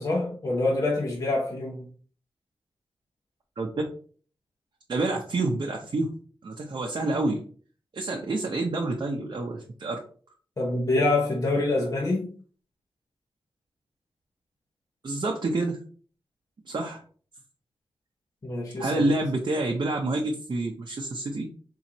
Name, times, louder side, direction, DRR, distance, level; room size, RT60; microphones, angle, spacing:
voice 1, 0.0-1.9 10.6-12.3 18.4-19.1, left 2 dB, 40° left, -3 dB, 0.9 m, -26 dB
voice 2, 4.9-6.1 6.4-7.4 7.9-10.0 15.0-15.8 16.7-17.0 18.8-21.5, right 2 dB, 55° right, 0 dB, 0.7 m, -28 dB
4.3 x 3.7 x 2.9 m, 0.43 s
wide cardioid pair, 125°, 9 cm